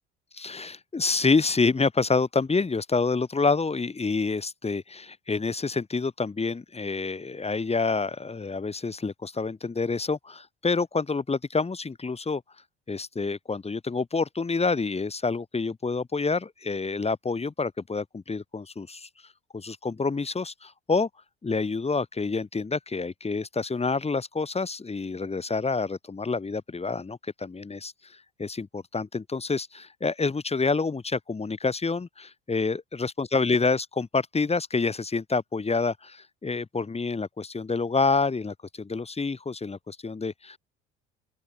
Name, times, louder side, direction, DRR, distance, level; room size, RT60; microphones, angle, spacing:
voice 1, 0.3-12.4 12.9-19.1 19.5-21.1 21.4-40.6, left 4 dB, 20° left, 2.4 m, -28 dB
open air
figure-of-eight pair, 60°, 32 cm